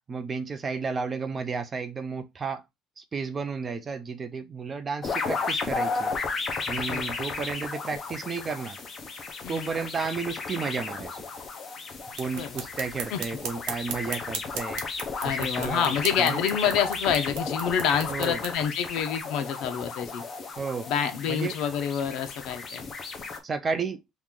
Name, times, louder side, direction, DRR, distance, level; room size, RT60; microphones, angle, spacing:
voice 1, 0.1-2.6 3.0-6.2 6.7-8.8 9.5-11.3 12.2-16.4 18.1-18.4 20.6-20.9 21.3-21.5 23.4-24.0, right 5 dB, 20° right, 0.4 m, -32 dB
sound 1, 5.0-23.4, left 4 dB, 25° left, 0.6 m, -34 dB
sound 2, 12.1-18.5, right 7 dB, 85° right, 0.9 m, -38 dB
voice 2, 15.2-20.2 20.9-22.9, left 8 dB, 65° left, 0.7 m, -27 dB
3.0 x 2.5 x 3.6 m
cardioid pair, 175°, 0 cm